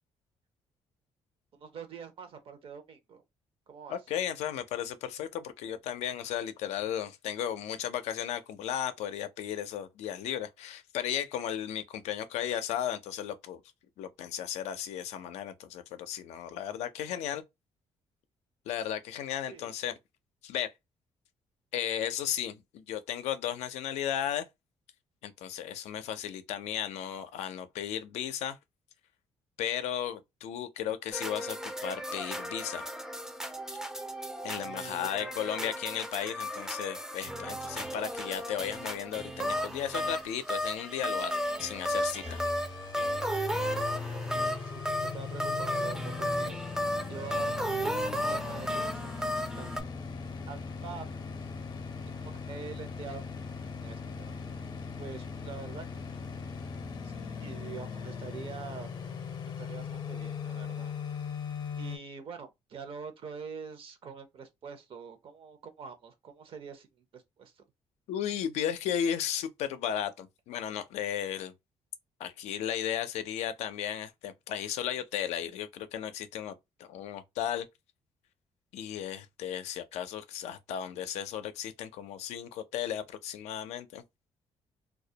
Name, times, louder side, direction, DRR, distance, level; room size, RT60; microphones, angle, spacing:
voice 1, 1.5-3.2 3.7-4.0 19.5-19.7 34.6-35.8 43.6-46.8 47.1-50.2 50.5-51.6 52.1-53.2 53.8-54.4 55.0-55.8 57.0-58.9 59.6-60.9 61.8-67.6, right 6 dB, 55° right, 0.6 m, -45 dB
voice 2, 3.9-13.6 14.0-17.4 18.7-19.9 20.4-20.7 21.7-24.5 25.2-28.6 29.6-32.8 34.4-42.4 68.1-71.5 72.2-77.7 78.7-84.0, left 10 dB, 85° left, 0.4 m, -35 dB
sound 1, 31.1-49.8, equal, 5° right, 0.4 m, -34 dB
sound 2, 37.7-42.7, right 3 dB, 75° right, 1.0 m, -55 dB
sound 3, 42.2-62.0, left 5 dB, 40° left, 0.6 m, -39 dB
2.2 x 2.1 x 2.7 m
cardioid pair, 95°, 11 cm